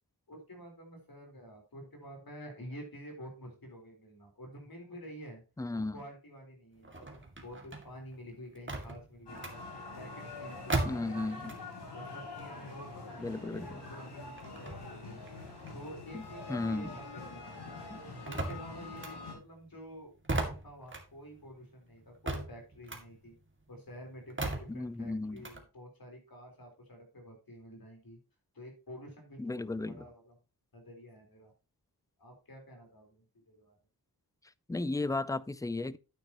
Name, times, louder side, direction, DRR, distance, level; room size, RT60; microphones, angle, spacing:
voice 1, 0.3-5.4 5.7-9.6 10.0-11.5 11.9-13.3 13.5-15.2 15.7-17.8 18.2-23.4 23.7-28.2 28.5-30.3 30.7-31.5 32.2-33.7, equal, 65° left, 4.1 m, -49 dB
voice 2, 5.6-5.9 10.9-11.5 13.2-13.8 16.1-16.2 16.5-17.0 17.9-18.0 24.7-25.4 29.4-30.0 34.7-36.0, left 2 dB, 10° left, 0.4 m, -35 dB
sound 1, 6.8-11.9 12.2-17.1 17.4-25.6, right 2 dB, 30° right, 2.3 m, -39 dB
sound 2, 9.3-19.3, left 3 dB, 90° left, 3.8 m, -45 dB
9.7 x 8.8 x 3.0 m
wide cardioid pair, 90°, 39 cm